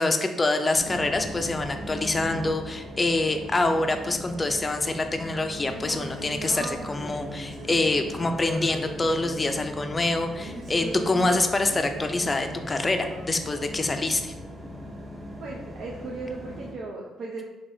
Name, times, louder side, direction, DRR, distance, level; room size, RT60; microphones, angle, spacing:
voice 1, 0.0-14.3, left 2 dB, 25° left, 6 dB, 0.3 m, -26 dB
sound 1, 0.7-16.7, left 1 dB, 35° right, 1.2 m, -40 dB
Singing, 5.6-14.1, right 1 dB, 85° right, 1.2 m, -40 dB
voice 2, 15.4-17.5, right 3 dB, 70° right, -2 dB, 0.4 m, -36 dB
3.3 x 2.7 x 2.6 m, 1.1 s
cardioid pair, 90°, 0 cm